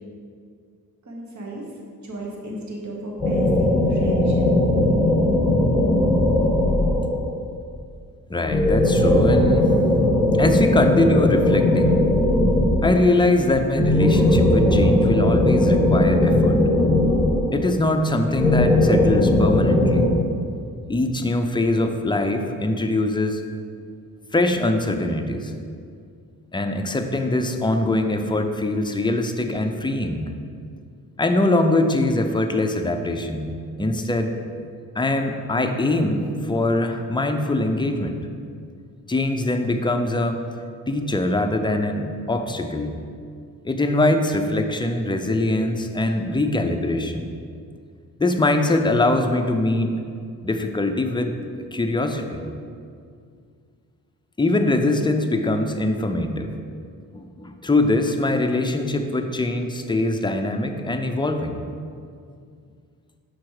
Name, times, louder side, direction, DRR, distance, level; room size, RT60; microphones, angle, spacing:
voice 1, 1.0-1.6 2.0-4.5, right 1 dB, 50° right, -2 dB, 1.2 m, -34 dB
sound 1, 3.2-7.4 8.5-13.1 13.7-17.8 18.4-20.0, left 1 dB, 5° right, 1.7 m, -18 dB
voice 2, 8.3-9.7 10.4-12.0 12.8-16.6 17.5-20.0 20.9-23.4 24.3-25.5 26.5-30.3 31.2-34.3 35.0-38.2 39.1-40.4 40.9-42.9 43.6-47.3 48.2-50.0 50.4-51.3 51.7-52.4 54.4-56.5 57.1-61.6, left 2 dB, 15° left, 5 dB, 0.5 m, -22 dB
6.0 x 4.3 x 4.8 m, 2.3 s
cardioid pair, 75°, 37 cm